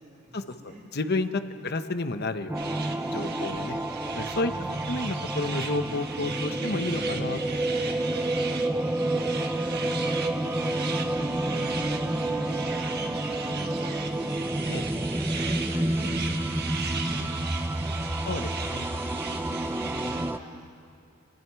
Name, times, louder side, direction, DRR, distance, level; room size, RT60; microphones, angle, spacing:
voice 1, 0.0-0.9 1.4-1.8 3.3-3.7 4.4-5.0 10.1-14.4 15.3-18.6 19.1-20.6, right 1 dB, 35° right, -6 dB, 3.2 m, -45 dB
voice 2, 0.9-3.8 4.1-4.5 4.9-7.8 14.7-14.8 18.3-18.9, left 2 dB, 50° left, 8 dB, 1.0 m, -31 dB
sound 1, 2.5-20.4, right 1 dB, 10° right, 0.5 m, -29 dB
sound 2, 2.5-20.3, right 5 dB, 50° right, 1.3 m, -38 dB
29.0 x 20.0 x 4.7 m, 2.4 s
head